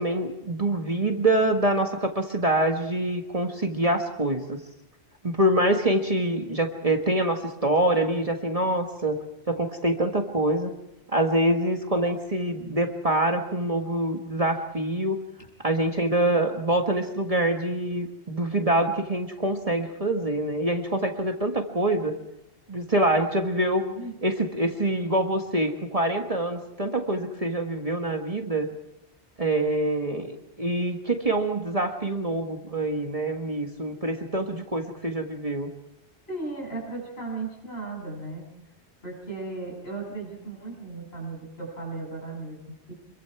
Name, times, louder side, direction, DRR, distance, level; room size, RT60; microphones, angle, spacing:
voice 1, 0.0-4.6 5.2-10.7 11.1-15.2 15.6-22.1 22.7-23.8 24.2-28.7 29.4-35.7, right 1 dB, 30° right, 4 dB, 1.7 m, -25 dB
voice 2, 23.8-24.1 36.3-38.5 39.0-42.9, right 3 dB, 65° left, 0 dB, 7.2 m, -36 dB
26.0 x 22.5 x 4.7 m, 0.86 s
omnidirectional pair, 1.1 m